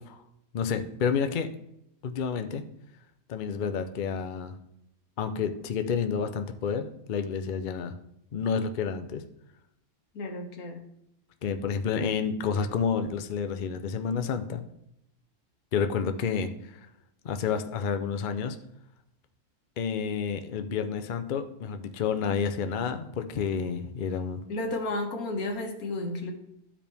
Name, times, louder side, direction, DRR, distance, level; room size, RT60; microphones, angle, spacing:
voice 1, 0.5-1.5 2.0-2.6 3.3-4.5 5.2-7.9 8.3-9.2 11.4-14.6 15.7-16.8 17.2-18.6 19.8-24.4, left 6 dB, 50° left, 8 dB, 0.6 m, -29 dB
voice 2, 10.2-10.8 24.5-26.3, left 2 dB, 85° left, 3 dB, 1.7 m, -32 dB
12.0 x 5.0 x 3.5 m, 0.78 s
omnidirectional pair, 1.5 m